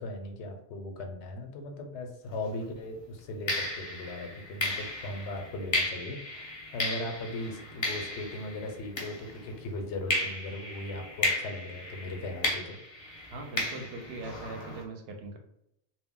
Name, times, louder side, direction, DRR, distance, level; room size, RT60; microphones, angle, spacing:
voice 1, 0.0-12.8, left 1 dB, 85° left, 4 dB, 0.9 m, -38 dB
sound 1, 2.3-2.5 3.5-9.6 10.1-14.8, left 2 dB, 35° left, 0.5 m, -34 dB
voice 2, 13.3-15.4, right 2 dB, 70° right, 3 dB, 0.8 m, -41 dB
2.2 x 2.0 x 3.6 m, 0.78 s
omnidirectional pair, 1.1 m